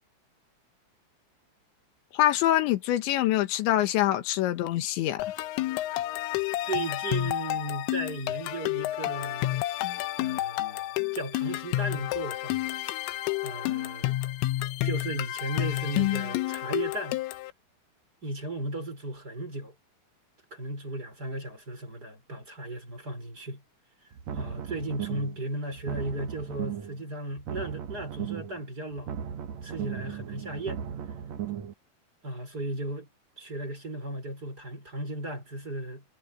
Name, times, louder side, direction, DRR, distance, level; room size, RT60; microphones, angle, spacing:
voice 1, 2.1-5.3, left 13 dB, 70° left, 3.6 m, -25 dB
sound 1, 5.2-17.5, left 16 dB, 85° left, 3.5 m, -30 dB
voice 2, 6.6-9.6 10.2-12.7 13.4-14.2 14.8-17.2 18.2-19.7 20.5-23.6 24.3-29.2 29.6-30.8 32.2-33.1 33.4-36.0, right 2 dB, 20° right, 6.0 m, -36 dB
sound 2, 24.1-25.4 25.7-27.0 27.3-28.6 28.9-31.7, right 9 dB, 75° right, 1.6 m, -37 dB
omnidirectional pair, 5.7 m